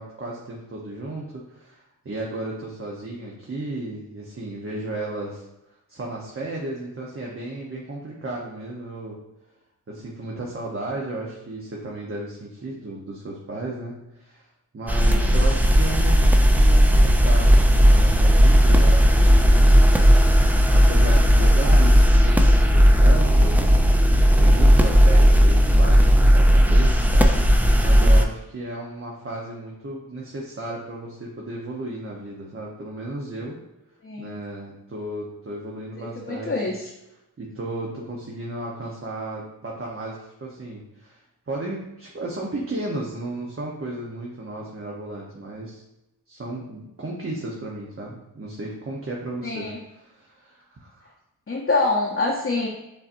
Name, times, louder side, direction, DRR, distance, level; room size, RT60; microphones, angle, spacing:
voice 1, 0.0-5.5 5.9-9.2 9.9-14.5 14.7-19.7 20.7-33.6 34.2-36.7 37.4-45.8 46.3-51.1, right 2 dB, 35° right, -3 dB, 0.8 m, -34 dB
sound 1, 14.9-28.2, equal, 5° right, 0.4 m, -15 dB
voice 2, 15.1-15.4 34.0-34.3 36.0-36.9 49.4-49.8 51.5-52.7, left 3 dB, 35° left, -3 dB, 0.8 m, -26 dB
6.6 x 2.9 x 2.6 m, 0.89 s
cardioid pair, 65°, 37 cm